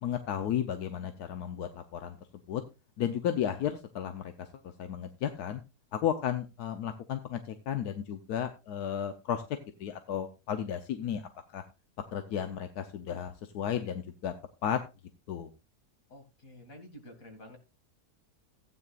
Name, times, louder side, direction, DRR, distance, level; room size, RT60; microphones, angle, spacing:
voice 1, 0.0-2.2 2.5-2.6 3.0-4.5 4.8-5.6 5.9-9.4 9.8-11.6 12.1-14.3 14.6-14.8 15.3-15.5, left 9 dB, 80° left, 8 dB, 1.3 m, -33 dB
voice 2, 16.1-17.6, left 1 dB, 60° left, 4 dB, 2.6 m, -50 dB
15.0 x 9.4 x 2.4 m, 0.28 s
omnidirectional pair, 1.7 m